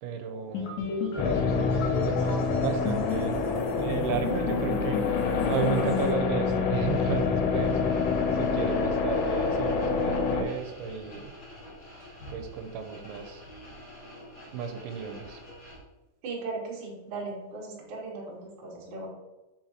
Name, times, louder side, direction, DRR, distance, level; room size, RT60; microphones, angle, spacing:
voice 1, 0.0-0.9 1.2-3.4 3.8-5.0 5.5-7.8 8.3-11.3 12.3-13.4 14.5-15.4, right 6 dB, 85° right, 6 dB, 3.0 m, -34 dB
sound 1, 0.5-6.1, left 4 dB, 70° left, 2.0 m, -33 dB
sound 2, 1.2-10.4, left 5 dB, 85° left, 3.2 m, -27 dB
sound 3, 6.8-15.8, equal, 45° left, 1.5 m, -47 dB
voice 2, 16.2-19.1, right 3 dB, 55° right, -4 dB, 2.4 m, -37 dB
6.3 x 5.3 x 2.9 m, 1.1 s
omnidirectional pair, 5.3 m